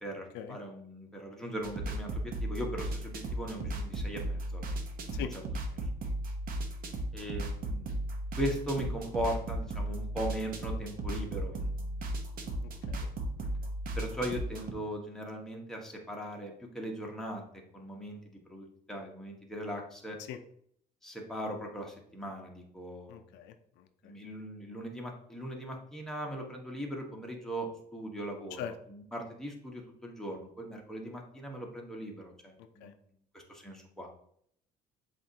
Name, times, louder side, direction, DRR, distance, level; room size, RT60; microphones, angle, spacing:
voice 1, 0.0-4.8 5.1-5.3 7.1-8.0 8.3-12.1 14.0-17.4 17.7-20.2 21.0-23.3 24.0-32.9 33.3-34.1, right 1 dB, 5° left, -1 dB, 1.0 m, -39 dB
sound 1, 1.6-14.7, right 1 dB, 55° right, 0.9 m, -36 dB
voice 2, 23.1-24.1 28.6-28.7 32.6-32.9, left 9 dB, 90° left, 8 dB, 0.5 m, -42 dB
7.4 x 2.6 x 2.7 m, 0.67 s
cardioid pair, 110°, 17 cm